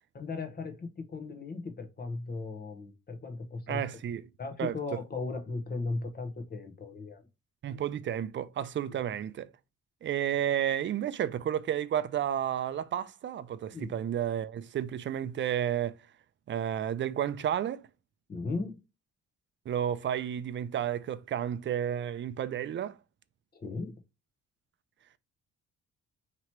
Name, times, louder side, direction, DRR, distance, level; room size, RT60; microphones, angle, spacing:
voice 1, 0.1-3.8 4.4-7.2 13.7-13.9 18.3-18.8 23.5-23.9, left 3 dB, 30° left, 0.9 m, -37 dB
voice 2, 3.7-4.3 4.6-4.8 7.6-9.5 10.0-16.0 16.5-17.9 19.7-23.0, right 10 dB, 40° right, 0.4 m, -31 dB
3.0 x 2.9 x 4.5 m
cardioid pair, 90°, 30 cm